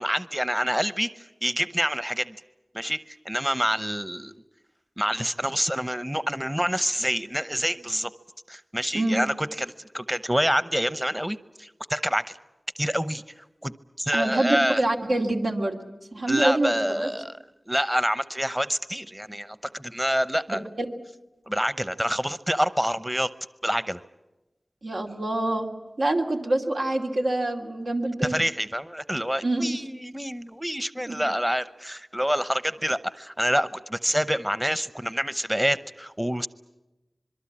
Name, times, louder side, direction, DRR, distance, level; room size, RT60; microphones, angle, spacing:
voice 1, 0.0-2.4 2.7-4.3 5.0-8.1 8.5-12.2 12.8-13.7 14.0-14.8 16.3-17.4 17.7-20.6 21.5-23.3 23.6-24.0 28.2-36.5, equal, 10° right, 15 dB, 0.8 m, -27 dB
voice 2, 14.1-15.8 16.1-17.1 20.5-20.9 24.8-25.7 26.0-28.4 29.4-29.7 31.1-31.2, right 1 dB, 90° right, 1 dB, 2.6 m, -26 dB
26.0 x 22.5 x 8.6 m, 1.0 s
wide cardioid pair, 45°, 0 cm